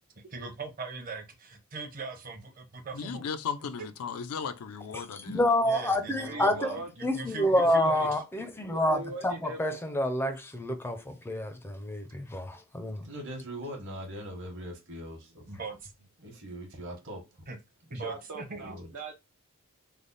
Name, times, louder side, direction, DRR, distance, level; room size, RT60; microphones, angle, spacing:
voice 1, 0.2-3.3 3.8-3.9 5.6-8.2 15.5-15.9 17.5-17.6 17.9-18.7, right 3 dB, 40° right, 0.7 m, -40 dB
voice 2, 2.9-5.4, left 6 dB, 85° left, 0.4 m, -36 dB
voice 3, 4.9-6.7 7.0-9.0 9.2-9.3 9.6-13.0, left 1 dB, 10° left, 0.4 m, -28 dB
voice 4, 6.0-6.9 7.5-8.1 8.7-9.9 17.9-19.1, right 2 dB, 75° right, 0.6 m, -41 dB
voice 5, 13.0-15.4 16.2-17.2 18.6-18.9, equal, 60° right, 1.1 m, -41 dB
3.4 x 2.0 x 3.8 m
head